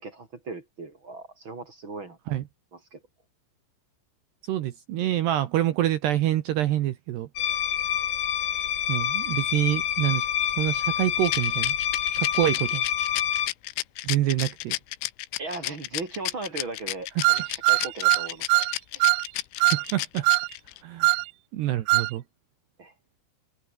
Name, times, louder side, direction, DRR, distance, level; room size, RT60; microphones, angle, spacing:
voice 1, 0.0-2.2 2.7-3.0 15.4-18.7 18.9-19.1 22.8-22.9, right 3 dB, 30° right, 2.5 m, -38 dB
voice 2, 4.4-7.3 8.9-10.3 10.6-11.8 12.2-12.8 14.0-14.8 17.2-17.3 19.6-20.3 20.8-21.1 21.5-22.2, right 13 dB, 70° right, 2.9 m, -26 dB
sound 1, 7.4-13.5, left 10 dB, 55° left, 2.6 m, -27 dB
Rattle, 11.2-20.8, left 19 dB, 80° left, 3.4 m, -32 dB
sound 2, 17.2-18.7 19.0-19.2 19.6-19.8 20.2-20.5 21.0-21.2 21.9-22.1, right 25 dB, 85° right, 2.7 m, -21 dB
omnidirectional pair, 5.9 m